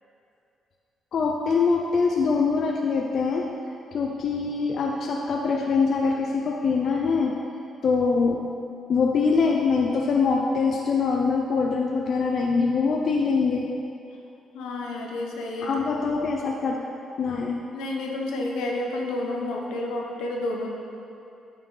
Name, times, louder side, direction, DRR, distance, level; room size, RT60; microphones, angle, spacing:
voice 1, 1.1-3.4 3.9-7.4 7.8-8.4 8.9-13.7 15.6-16.8 17.2-17.6, left 4 dB, 60° left, 0 dB, 0.5 m, -23 dB
voice 2, 14.5-15.7 17.7-20.7, left 2 dB, 90° left, 0 dB, 0.9 m, -30 dB
9.1 x 5.4 x 3.3 m, 2.7 s
cardioid pair, 90°, 0 cm